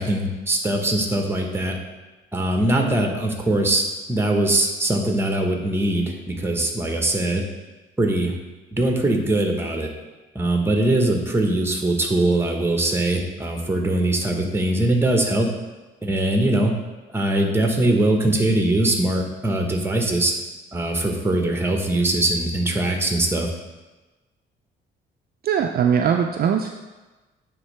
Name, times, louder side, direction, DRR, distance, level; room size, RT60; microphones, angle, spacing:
voice 1, 0.0-1.8 2.3-7.4 8.0-8.3 8.7-9.9 10.3-15.5 16.0-16.7 17.1-20.3 20.7-23.5, right 1 dB, 10° right, 2 dB, 1.0 m, -21 dB
voice 2, 25.4-26.7, right 7 dB, 50° right, 3 dB, 0.4 m, -20 dB
8.8 x 3.6 x 3.2 m, 1.2 s
cardioid pair, 90°, 20 cm